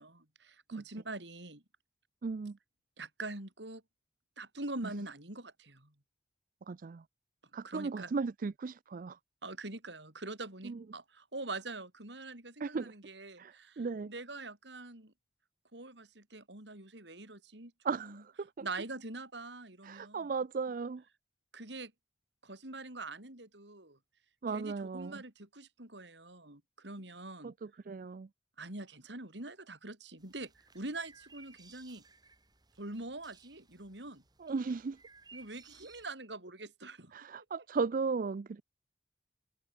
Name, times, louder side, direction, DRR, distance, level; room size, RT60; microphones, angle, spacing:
voice 1, 0.0-1.6 3.0-3.8 4.4-5.9 7.6-8.1 9.4-15.1 15.7-17.7 18.0-18.2 18.6-20.3 21.5-21.9 22.4-24.0 24.5-27.5 28.6-32.0 32.8-34.2 35.3-37.1, right 2 dB, 75° right, 5.3 m, -44 dB
voice 2, 2.2-2.6 6.7-7.0 7.5-9.2 10.6-10.8 12.6-12.9 13.4-14.1 17.8-18.7 19.8-21.0 24.4-25.2 27.4-28.3 34.4-35.0 37.1-38.6, right 4 dB, 50° right, 0.4 m, -36 dB
sound 1, 30.2-36.1, right 4 dB, 25° right, 5.4 m, -60 dB
head